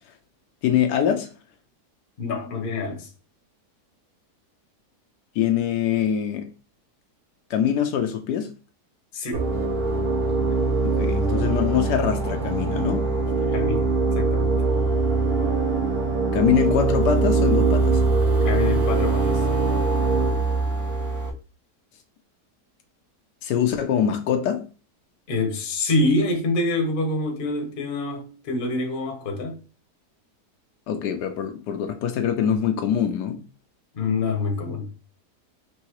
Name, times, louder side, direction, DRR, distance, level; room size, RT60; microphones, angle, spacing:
voice 1, 0.6-1.3 5.3-6.4 7.5-8.5 10.8-13.1 16.3-18.0 23.4-24.6 30.9-33.4, left 9 dB, 80° left, 1.2 m, -23 dB
voice 2, 2.2-3.1 9.1-9.5 13.5-13.9 14.1-14.6 18.4-19.4 25.3-29.6 33.9-34.9, left 2 dB, 40° left, 0.9 m, -26 dB
sound 1, 9.3-21.3, right 3 dB, 65° right, 1.5 m, -22 dB
4.7 x 3.0 x 3.0 m
omnidirectional pair, 1.8 m